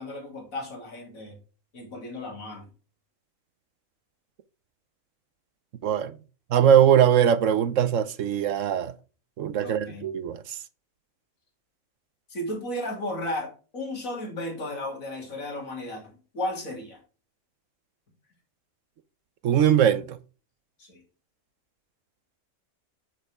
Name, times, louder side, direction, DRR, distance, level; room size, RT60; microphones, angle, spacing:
voice 1, 0.0-1.3 1.7-2.7 9.6-10.1 12.3-17.0 20.8-21.0, left 1 dB, 65° left, 3.2 m, -34 dB
voice 2, 5.8-6.2 6.5-8.9 9.4-10.6 19.4-20.2, right 9 dB, 65° right, 1.0 m, -21 dB
8.4 x 7.9 x 3.4 m
omnidirectional pair, 1.5 m